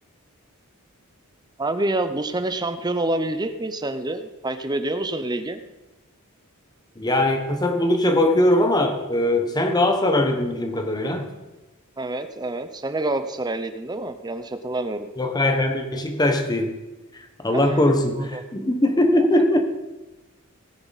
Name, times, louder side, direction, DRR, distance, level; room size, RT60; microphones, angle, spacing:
voice 1, 1.6-5.6 12.0-15.1 17.5-17.8 18.2-18.4 19.1-19.4, right 2 dB, 20° right, 9 dB, 0.7 m, -27 dB
voice 2, 7.0-11.3 15.2-16.7 17.4-19.6, left 1 dB, 20° left, 6 dB, 1.2 m, -21 dB
17.5 x 9.7 x 4.1 m, 1.1 s
head